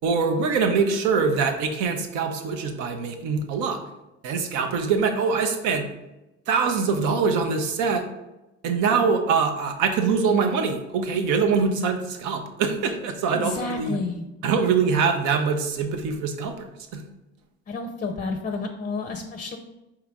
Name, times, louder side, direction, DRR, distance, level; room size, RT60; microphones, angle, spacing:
voice 1, 0.0-3.8 4.2-5.9 6.5-8.0 8.6-14.0 14.4-17.0, right 5 dB, 75° right, 5 dB, 0.8 m, -23 dB
voice 2, 13.3-14.2 17.7-19.6, left 3 dB, 30° left, 4 dB, 0.5 m, -30 dB
4.8 x 3.1 x 3.6 m, 0.99 s
supercardioid pair, 85°, 30 cm